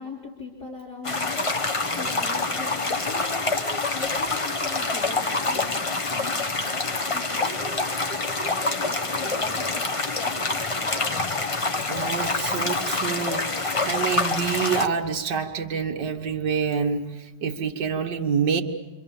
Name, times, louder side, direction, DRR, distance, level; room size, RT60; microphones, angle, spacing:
voice 1, 0.0-1.7 2.0-6.4 6.6-11.2, left 3 dB, 70° left, -4 dB, 3.9 m, -41 dB
sound 1, 1.0-14.9, left 3 dB, 25° left, 0.9 m, -26 dB
voice 2, 11.9-18.6, right 6 dB, 80° right, 3 dB, 2.0 m, -27 dB
29.0 x 25.0 x 7.1 m, 1.1 s
omnidirectional pair, 1.8 m